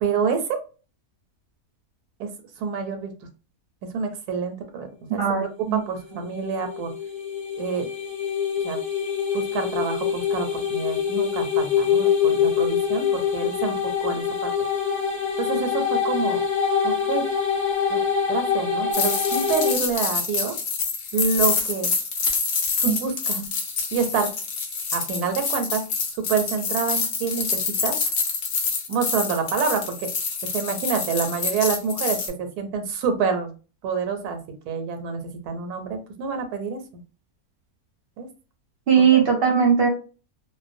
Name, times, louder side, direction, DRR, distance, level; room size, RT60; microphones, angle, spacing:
voice 1, 0.0-0.6 2.2-2.3 2.6-3.1 3.9-5.2 5.7-6.9 7.6-7.9 8.6-8.8 9.3-14.5 15.4-16.4 16.8-17.2 17.9-18.0 18.3-20.5 21.1-21.9 22.8-23.4 23.9-24.3 24.9-25.8 26.3-27.9 28.9-30.1 30.5-33.5 33.8-34.4 34.7-37.0 38.2-38.3 39.1-39.2, right 5 dB, 80° right, 6 dB, 1.1 m, -27 dB
voice 2, 5.2-5.8 22.9-23.0 38.9-39.9, right 7 dB, 55° right, 0 dB, 0.7 m, -19 dB
sound 1, 6.2-19.7, left 7 dB, 40° left, 1.1 m, -24 dB
sound 2, 18.9-32.3, left 5 dB, 80° left, 0.5 m, -27 dB
2.5 x 2.1 x 2.5 m, 0.34 s
omnidirectional pair, 1.6 m